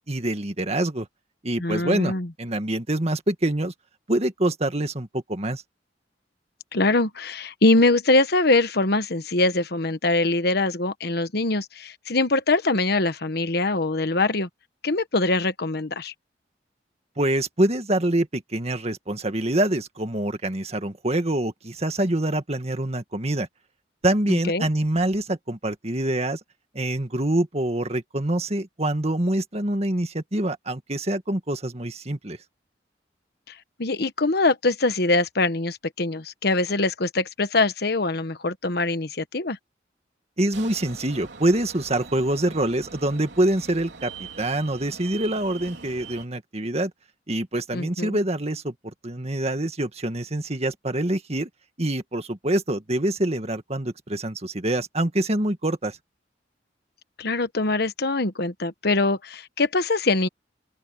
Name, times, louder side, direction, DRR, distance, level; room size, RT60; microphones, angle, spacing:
voice 1, 0.1-1.1 1.4-2.1 2.4-3.7 4.1-5.6 17.2-23.5 24.0-26.4 26.7-32.4 40.4-46.9 47.3-48.7 49.0-51.5 51.8-56.0, right 1 dB, 35° right, 1.9 m, -25 dB
voice 2, 1.6-2.3 6.7-14.5 14.8-16.1 24.3-24.7 33.8-39.6 47.7-48.2 57.2-60.3, left 2 dB, 60° left, 1.2 m, -23 dB
sound 1, 40.5-46.2, right 5 dB, 75° right, 3.6 m, -42 dB
head